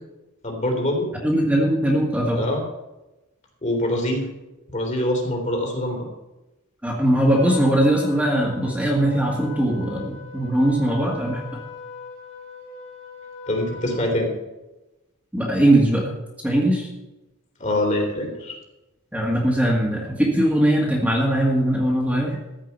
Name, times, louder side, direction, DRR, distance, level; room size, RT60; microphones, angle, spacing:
voice 1, 0.4-1.1 2.3-2.6 3.6-4.3 4.7-6.1 13.5-14.3 17.6-18.6, left 1 dB, 35° left, 1 dB, 3.0 m, -24 dB
voice 2, 1.2-2.4 6.8-11.4 15.3-16.0 16.4-16.9 19.1-22.4, right 1 dB, 5° right, -3 dB, 2.1 m, -20 dB
Trumpet, 7.3-14.2, left 4 dB, 60° left, 2.9 m, -40 dB
14.5 x 5.4 x 8.4 m, 0.99 s
head